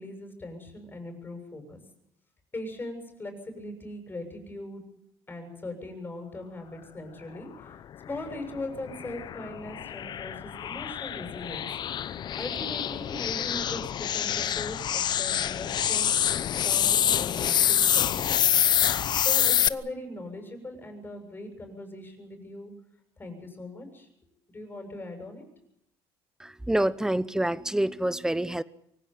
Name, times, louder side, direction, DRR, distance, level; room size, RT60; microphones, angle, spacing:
voice 1, 0.0-1.8 2.5-4.8 5.3-7.8 8.1-11.7 12.4-16.1 16.6-18.5 19.2-22.7 23.2-24.1 24.5-25.5, left 2 dB, 20° left, 6 dB, 7.1 m, -40 dB
sound 1, 8.1-19.7, left 10 dB, 50° left, 0.8 m, -26 dB
voice 2, 26.4-28.6, right 1 dB, 5° right, 16 dB, 1.0 m, -27 dB
24.0 x 16.0 x 9.2 m, 0.76 s
cardioid pair, 105°, 10 cm